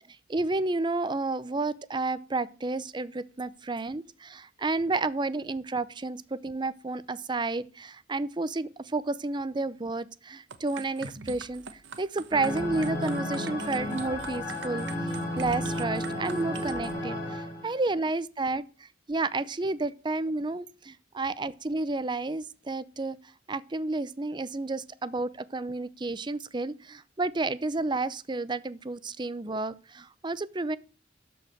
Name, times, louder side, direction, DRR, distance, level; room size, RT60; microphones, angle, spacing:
voice 1, 0.3-11.6 12.0-14.9 15.4-23.2 23.5-30.8, right 3 dB, 25° right, 0.5 m, -31 dB
sound 1, 10.5-16.9, right 4 dB, 85° right, 1.1 m, -43 dB
sound 2, 12.3-17.7, left 1 dB, 15° left, 3.0 m, -33 dB
12.5 x 4.8 x 6.6 m
head